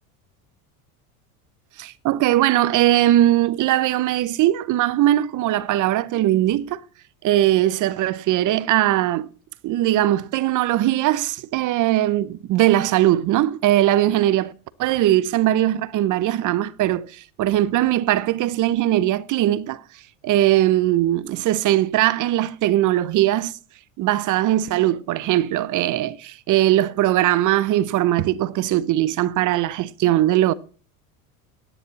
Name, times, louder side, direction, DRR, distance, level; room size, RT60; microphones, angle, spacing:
voice 1, 1.8-6.8 7.2-9.3 9.6-14.5 14.8-19.8 20.2-23.5 24.0-30.5, right 14 dB, 45° right, 0.7 m, -20 dB
10.0 x 10.0 x 4.0 m
supercardioid pair, 95°, 42 cm